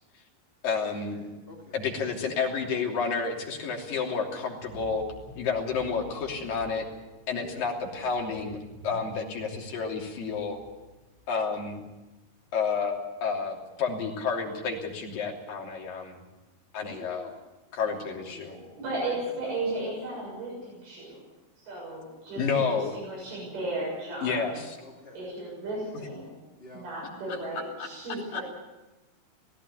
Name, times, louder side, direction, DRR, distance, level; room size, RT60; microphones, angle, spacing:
voice 1, 0.6-1.3 1.7-5.0 5.4-6.9 7.3-8.6 8.8-10.6 11.3-11.8 12.5-16.2 16.7-17.3 17.7-18.6 22.4-23.0 24.2-24.8 27.3-27.4 28.3-28.4, left 5 dB, 65° left, 0 dB, 4.7 m, -30 dB
voice 2, 1.2-1.8 7.4-7.7 16.8-17.3 17.8-18.4 19.0-19.1 19.4-19.6 24.8-25.3 26.6-26.8, left 2 dB, 20° left, -1 dB, 2.4 m, -48 dB
sound 1, 4.5-12.0 12.2-12.4, left 1 dB, 55° right, 6.6 m, -49 dB
voice 3, 18.4-21.2 21.7-22.4 22.7-24.6 25.1-26.4 26.7-28.4, right 2 dB, 85° right, -4 dB, 8.8 m, -35 dB
17.5 x 17.0 x 9.7 m, 1.1 s
omnidirectional pair, 4.3 m